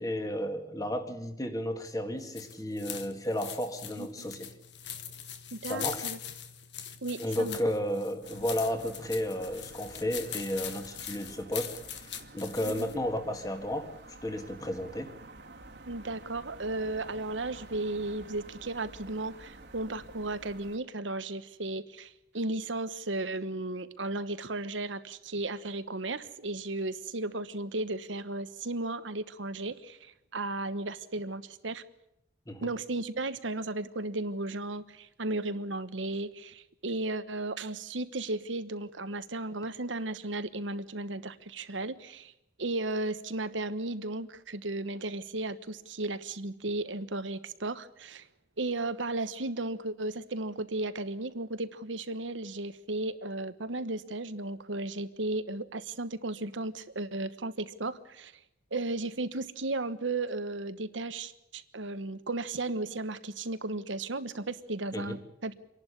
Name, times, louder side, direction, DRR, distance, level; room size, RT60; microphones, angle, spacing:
voice 1, 0.0-4.5 5.6-6.1 7.2-13.9 14.2-15.2 32.5-32.7 64.9-65.2, left 1 dB, 20° left, 2.0 m, -33 dB
sound 1, 2.2-12.9, left 9 dB, 65° left, 1.6 m, -42 dB
voice 2, 5.5-6.2 7.0-7.6 12.6-13.0 15.9-31.8 32.6-42.3 42.6-48.3 48.6-58.3 58.7-65.5, right 2 dB, 90° right, 1.2 m, -35 dB
sound 2, 8.2-20.8, right 2 dB, 65° right, 2.1 m, -50 dB
26.5 x 11.5 x 9.8 m
head